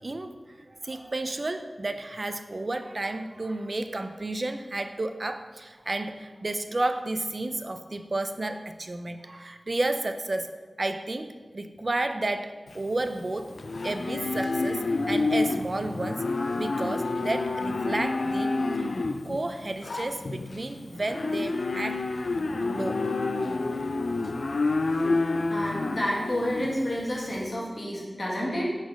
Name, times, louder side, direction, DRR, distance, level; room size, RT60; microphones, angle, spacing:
voice 1, 0.0-10.5 10.8-13.5 13.8-18.9 19.2-22.0 22.6-23.0, right 2 dB, 45° right, 8 dB, 0.4 m, -32 dB
Livestock farm animals working animals, 12.7-27.4, left 3 dB, 75° left, 0.3 m, -29 dB
voice 2, 25.5-28.7, equal, 50° left, -5 dB, 1.6 m, -29 dB
4.9 x 3.9 x 5.3 m, 1.4 s
wide cardioid pair, 75°, 0 cm